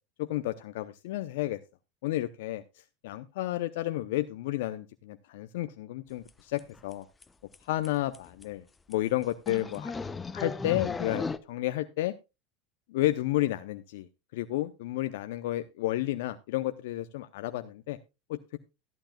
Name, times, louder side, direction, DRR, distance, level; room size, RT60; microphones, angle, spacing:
voice 1, 0.2-1.6 2.0-2.6 3.0-7.0 7.6-9.9 10.3-12.1 12.9-14.1 14.3-18.0 18.3-18.6, left 15 dB, 75° left, 9 dB, 0.7 m, -31 dB
sound 1, 6.3-6.4 6.6-6.9 7.2-7.3 7.5-7.6 7.8-7.9 8.1-8.4 8.9-9.0 9.5-11.4, left 4 dB, 20° left, 0.9 m, -35 dB
14.0 x 11.5 x 2.3 m, 0.26 s
hypercardioid pair, 95°, 0 cm